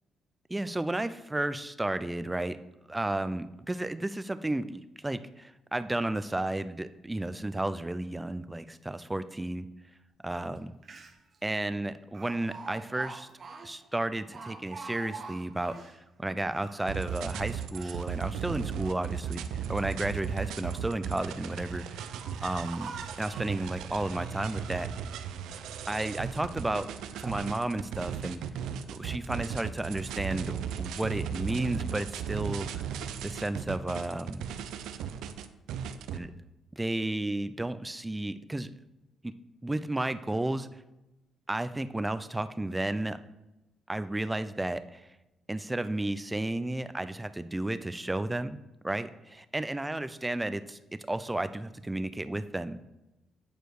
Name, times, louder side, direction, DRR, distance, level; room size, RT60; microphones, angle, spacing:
voice 1, 0.5-2.6 2.9-9.7 10.2-10.7 11.4-13.3 13.6-22.1 22.4-22.9 23.2-24.9 25.9-26.9 27.2-28.4 28.9-32.7 33.2-34.5 36.1-36.3 36.7-38.7 39.2-39.3 39.6-40.8 41.5-43.2 43.9-45.1 45.5-48.6 48.8-50.8 51.1-52.8, right 1 dB, 15° right, 12 dB, 0.5 m, -33 dB
Speech, 10.6-10.7 10.8-11.4 12.1-16.0 16.4-18.1 18.6-19.5 20.4-21.0 21.7-23.7 24.2-25.0 25.4-25.9 26.5-26.6 27.1-27.5 27.9-28.2, right 4 dB, 45° right, 0.9 m, -47 dB
sound 1, 16.9-36.2, right 8 dB, 85° right, 0.5 m, -36 dB
9.2 x 4.5 x 4.9 m, 0.96 s
cardioid pair, 90°, 0 cm